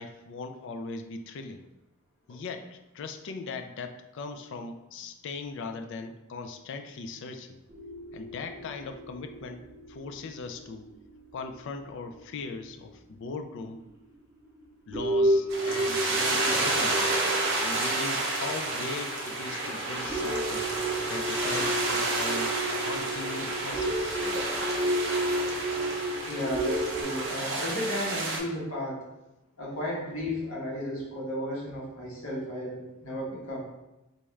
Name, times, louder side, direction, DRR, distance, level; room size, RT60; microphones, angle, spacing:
voice 1, 0.0-1.6 2.3-7.6 8.1-10.9 11.3-13.8 14.9-17.1 17.6-20.7 21.1-22.5 22.8-24.2, left 4 dB, 60° left, 7 dB, 0.3 m, -39 dB
sound 1, 7.7-11.6 12.1-12.2 13.2-13.3 13.9-14.0 14.4-14.6 14.9-27.0, right 1 dB, 15° right, 0.5 m, -32 dB
sound 2, 15.5-28.4, right 2 dB, 60° right, 0.7 m, -30 dB
voice 2, 26.3-29.0 29.6-33.7, left 1 dB, 75° left, -6 dB, 1.3 m, -34 dB
4.0 x 2.3 x 3.2 m, 0.98 s
head